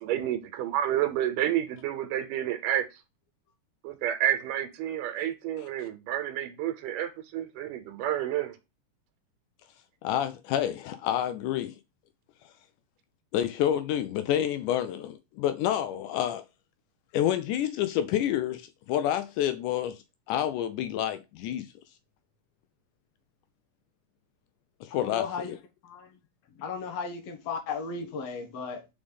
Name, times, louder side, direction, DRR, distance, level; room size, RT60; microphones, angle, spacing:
voice 1, 0.0-2.9 3.8-8.6, right 11 dB, 90° right, 2.5 m, -30 dB
voice 2, 10.0-11.8 13.3-16.4 17.1-20.0 20.3-21.7 24.8-25.6, left 11 dB, 80° left, 2.0 m, -28 dB
voice 3, 24.9-25.5 25.8-26.2 26.6-28.9, left 5 dB, 60° left, 2.0 m, -35 dB
5.2 x 5.0 x 5.2 m
omnidirectional pair, 3.6 m